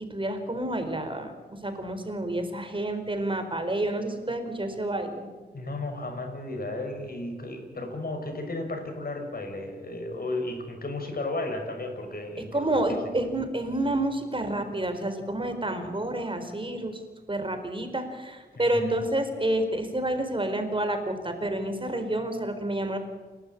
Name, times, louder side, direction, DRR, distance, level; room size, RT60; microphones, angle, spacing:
voice 1, 0.1-1.3 1.6-5.3 12.5-17.0 17.3-23.0, right 1 dB, 30° right, 7 dB, 4.4 m, -29 dB
voice 2, 5.5-13.3 18.5-18.9, left 2 dB, 60° left, 3 dB, 6.1 m, -34 dB
29.0 x 12.5 x 8.6 m, 1.4 s
cardioid pair, 65°, 17 cm